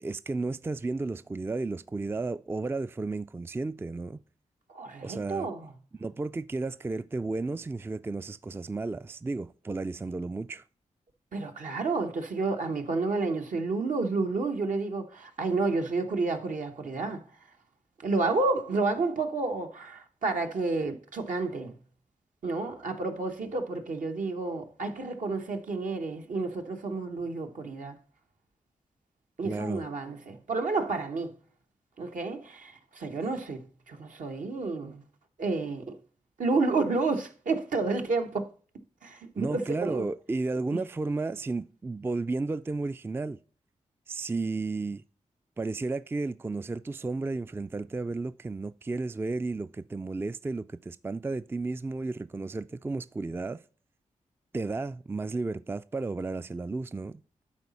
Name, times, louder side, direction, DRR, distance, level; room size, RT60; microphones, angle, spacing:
voice 1, 0.0-4.2 5.0-5.5 5.9-10.6 29.4-29.8 39.4-43.4 44.1-45.0 45.6-53.6 54.5-57.2, right 3 dB, 15° right, 0.3 m, -33 dB
voice 2, 4.7-5.7 11.3-17.2 18.0-21.8 22.4-28.0 29.4-31.3 32.0-35.0 35.4-36.0 36.4-38.5 39.0-40.0, right 3 dB, 70° right, 1.1 m, -30 dB
11.0 x 4.2 x 4.1 m
cardioid pair, 45°, 14 cm